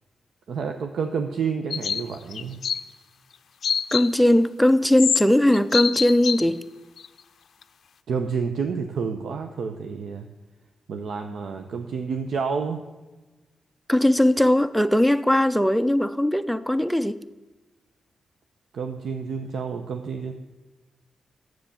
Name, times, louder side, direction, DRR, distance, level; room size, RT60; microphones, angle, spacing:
voice 1, 0.5-2.6 8.1-10.3 10.9-12.8 18.7-20.3, right 5 dB, 70° right, 5 dB, 0.7 m, -29 dB
sound 1, 1.7-2.0 2.3-2.8 3.6-4.1 5.0-5.2 5.5-6.4 7.0-7.1, left 7 dB, 60° left, 0.4 m, -25 dB
voice 2, 3.9-6.6 13.9-17.2, left 1 dB, ahead, 12 dB, 0.4 m, -19 dB
10.0 x 7.7 x 7.0 m, 1.2 s
wide cardioid pair, 150°, 0 cm